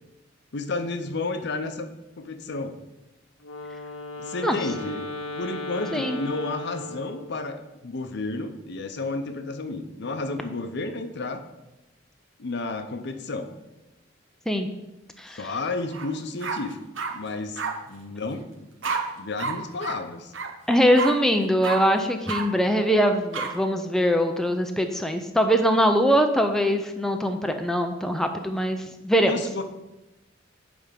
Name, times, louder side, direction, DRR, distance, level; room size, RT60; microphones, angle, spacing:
voice 1, 0.5-2.7 4.2-5.0 5.4-11.4 12.4-13.5 15.3-16.8 17.1-17.6 17.9-18.7 19.2-20.3 29.2-29.6, left 3 dB, 60° left, 8 dB, 0.7 m, -31 dB
Wind instrument woodwind instrument, 3.4-7.5, left 2 dB, 85° left, 1.0 m, -36 dB
sound 1, 15.9-16.1 16.4-17.1 17.6-17.7 18.8-19.0 19.4-19.5 19.8-19.9 20.3-20.5 20.9-21.1 21.6-21.8 22.3-22.4 23.3-23.5, right 5 dB, 70° right, 1.0 m, -29 dB
voice 2, 20.7-29.3, equal, ahead, 5 dB, 0.4 m, -22 dB
9.0 x 3.5 x 6.6 m, 0.98 s
head